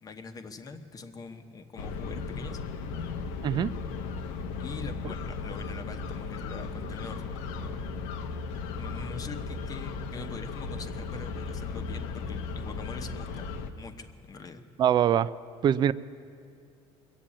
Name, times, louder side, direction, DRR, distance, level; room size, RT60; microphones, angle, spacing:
voice 1, 0.0-2.6 4.6-7.9 8.8-13.5 13.7-14.7, left 4 dB, 30° left, 7 dB, 1.0 m, -43 dB
sound 1, 1.8-13.7, left 4 dB, 85° left, 0.9 m, -36 dB
voice 2, 14.8-15.3 15.6-15.9, right 10 dB, 35° right, 17 dB, 0.4 m, -23 dB
22.0 x 7.5 x 8.6 m, 2.4 s
cardioid pair, 125°, 13 cm